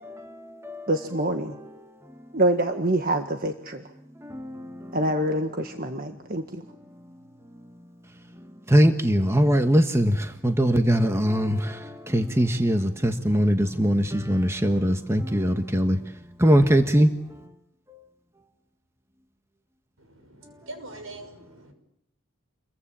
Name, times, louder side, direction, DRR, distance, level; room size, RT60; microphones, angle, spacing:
voice 1, 0.9-1.6 2.3-3.8 4.9-6.6, right 1 dB, 45° right, 1.7 m, -25 dB
voice 2, 8.7-10.1 10.4-11.6 12.1-16.0 16.4-17.1, equal, 15° right, 1.4 m, -20 dB
voice 3, 20.0-21.7, right 1 dB, 75° right, 6.0 m, -43 dB
29.0 x 23.0 x 8.7 m
head